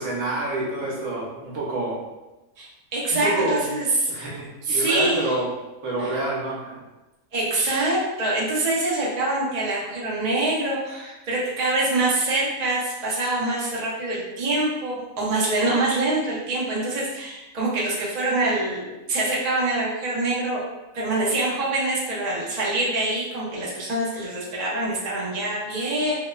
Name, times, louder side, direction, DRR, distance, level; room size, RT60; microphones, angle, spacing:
voice 1, 0.0-2.0 3.2-3.7 4.1-5.5 5.8-6.8, right 2 dB, 65° right, -5 dB, 1.1 m, -27 dB
voice 2, 2.6-3.9 4.2-4.3 4.6-5.3 6.0-6.1 7.3-20.6 20.9-26.2, right 2 dB, 50° right, -6 dB, 0.5 m, -25 dB
2.9 x 2.1 x 2.2 m, 1.0 s
omnidirectional pair, 1.5 m